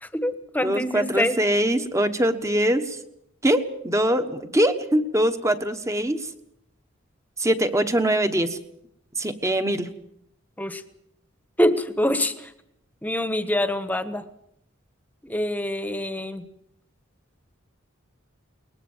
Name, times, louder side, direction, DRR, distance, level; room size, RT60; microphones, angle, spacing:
voice 1, 0.0-1.3 10.6-10.8 11.6-12.5 13.0-14.2 15.2-16.4, left 1 dB, 10° left, 11 dB, 1.3 m, -25 dB
voice 2, 0.6-3.0 3.4-6.3 7.4-8.6 9.2-9.9, equal, 15° right, 8 dB, 1.3 m, -23 dB
21.5 x 20.0 x 7.3 m, 0.76 s
head